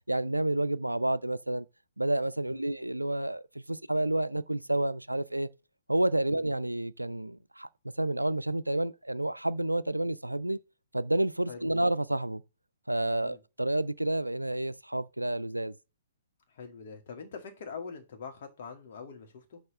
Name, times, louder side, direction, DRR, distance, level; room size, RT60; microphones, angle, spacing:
voice 1, 0.1-1.7 2.0-5.5 5.9-7.7 8.0-10.6 10.9-12.4 12.9-15.7, right 1 dB, 85° right, 0.4 m, -29 dB
voice 2, 11.5-11.8 13.2-13.4 16.5-19.6, left 5 dB, 45° left, 2.1 m, -44 dB
6.5 x 4.8 x 6.5 m
figure-of-eight pair, 120°, 0 cm